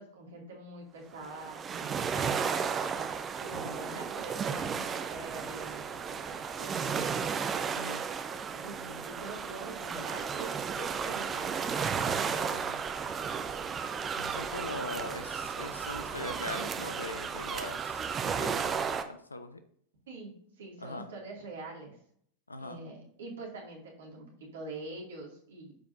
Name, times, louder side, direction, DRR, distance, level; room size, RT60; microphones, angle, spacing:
voice 1, 0.0-2.4 3.4-7.3 8.5-11.8 12.1-12.7 20.1-22.0 22.6-25.8, right 2 dB, 60° right, -1 dB, 2.2 m, -45 dB
sound 1, 1.2-19.0, right 6 dB, 20° right, 0.6 m, -34 dB
voice 2, 7.7-8.0 8.8-9.0 12.5-12.8 14.2-18.7 19.0-19.6 20.8-21.1 22.5-22.8, left 2 dB, 80° left, 10 dB, 0.6 m, -41 dB
13.0 x 4.7 x 2.6 m, 0.65 s
figure-of-eight pair, 90°, 0 cm